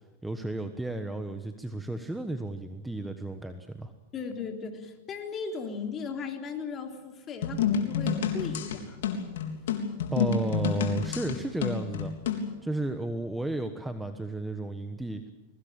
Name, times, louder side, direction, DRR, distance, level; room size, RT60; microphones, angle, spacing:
voice 1, 0.2-3.9 10.1-12.1 12.6-15.2, right 2 dB, 5° right, 7 dB, 1.3 m, -33 dB
voice 2, 4.1-9.0, left 5 dB, 25° left, 4 dB, 3.5 m, -37 dB
sound 1, 7.4-12.5, left 6 dB, 75° left, 3.7 m, -29 dB
22.5 x 19.0 x 8.9 m, 1.1 s
hypercardioid pair, 130°, 0 cm